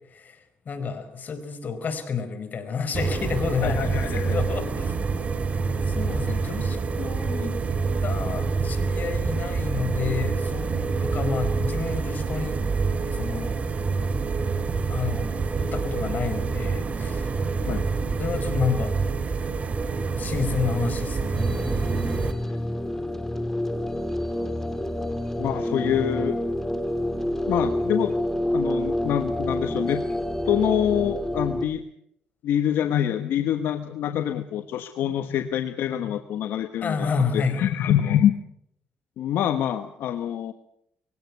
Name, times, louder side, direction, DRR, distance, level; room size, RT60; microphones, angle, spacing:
voice 1, 0.6-4.9 5.9-7.6 8.0-12.6 13.0-13.6 14.9-15.3 15.6-17.3 18.2-19.0 20.2-21.4 36.8-37.7, left 5 dB, 50° left, 9 dB, 4.7 m, -30 dB
sound 1, 2.9-22.3, right 4 dB, 40° right, 2.6 m, -27 dB
voice 2, 3.6-4.4 17.7-17.9 22.5-22.6 25.4-26.4 27.4-28.2 28.5-30.0 30.5-31.8 32.4-38.3 39.2-40.5, left 10 dB, 80° left, 9 dB, 1.2 m, -25 dB
sound 2, 21.4-31.7, left 1 dB, 10° left, 2.1 m, -28 dB
24.0 x 16.5 x 8.4 m, 0.74 s
cardioid pair, 85°, 4 cm